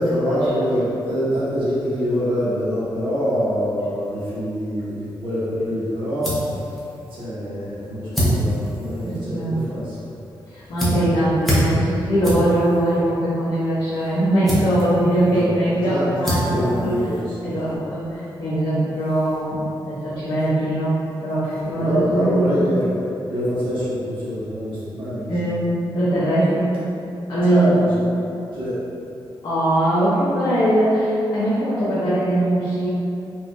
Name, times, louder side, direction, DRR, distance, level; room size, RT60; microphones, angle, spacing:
voice 1, 0.0-6.8 7.1-10.0 13.9-14.1 15.3-17.5 21.8-25.5 27.4-28.0 28.5-28.8, equal, 65° right, -11 dB, 1.3 m, -25 dB
sound 1, 5.6-17.8, equal, 5° left, 0.7 m, -28 dB
voice 2, 9.0-9.6 10.5-16.9 17.4-22.5 25.3-26.7 27.3-27.6 29.4-32.9, right 1 dB, 70° left, -14 dB, 1.0 m, -21 dB
4.8 x 2.7 x 2.3 m, 2.8 s
wide cardioid pair, 175°, 9 cm